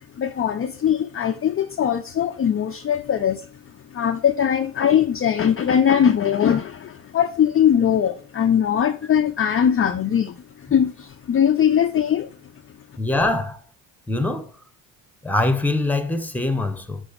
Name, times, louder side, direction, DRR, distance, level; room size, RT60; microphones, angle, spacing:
voice 1, 0.2-3.5 3.9-12.3, left 9 dB, 30° left, 0.5 m, -21 dB
voice 2, 13.0-13.6 14.1-14.5 15.2-17.0, left 2 dB, 5° left, 1.0 m, -23 dB
7.1 x 4.0 x 4.7 m
supercardioid pair, 65°, 47 cm